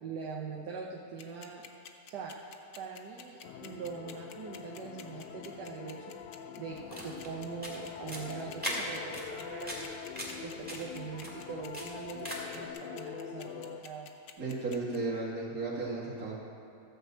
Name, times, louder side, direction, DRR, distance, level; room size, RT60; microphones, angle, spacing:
voice 1, 0.0-1.6 2.1-2.3 2.8-6.2 6.6-10.0 10.4-14.1, right 5 dB, 75° right, -1 dB, 1.5 m, -42 dB
sound 1, 1.2-15.0, left 8 dB, 65° left, 1.2 m, -49 dB
sound 2, 3.4-13.8, left 8 dB, 90° left, 1.2 m, -44 dB
sound 3, 6.7-12.7, equal, 5° right, 1.9 m, -41 dB
voice 2, 14.4-16.3, right 3 dB, 55° right, -6 dB, 2.7 m, -34 dB
14.0 x 5.2 x 7.6 m, 2.9 s
omnidirectional pair, 1.8 m